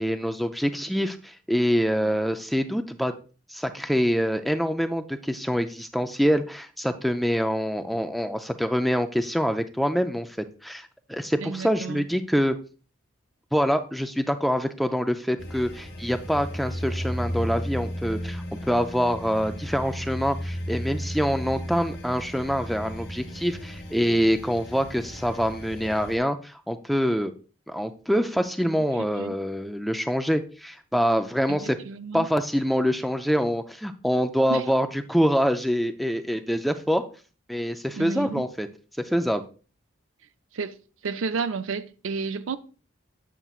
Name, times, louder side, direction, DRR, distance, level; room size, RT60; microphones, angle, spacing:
voice 1, 0.0-3.1 3.5-12.6 13.5-27.3 27.7-31.8 32.1-37.0 37.5-38.7 39.0-39.4, equal, ahead, 0.3 m, -25 dB
voice 2, 11.4-12.1 29.1-29.4 31.5-32.3 34.5-34.7 37.9-38.5 40.5-40.8 41.0-42.6, right 4 dB, 80° right, 0.5 m, -31 dB
sound 1, 15.4-26.2, equal, 50° left, 1.2 m, -34 dB
8.0 x 7.4 x 2.4 m
head